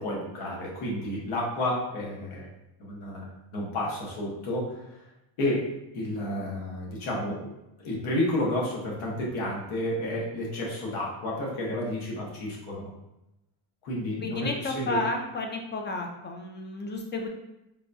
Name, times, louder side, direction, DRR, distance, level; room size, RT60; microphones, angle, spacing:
voice 1, 0.0-2.5 2.8-4.8 5.4-5.7 5.9-7.5 7.8-12.9 13.8-15.0, left 1 dB, 75° left, -3 dB, 1.3 m, -31 dB
voice 2, 14.2-17.3, left 2 dB, 25° left, 3 dB, 0.3 m, -32 dB
4.0 x 2.6 x 2.3 m, 0.91 s
cardioid pair, 105°, 49 cm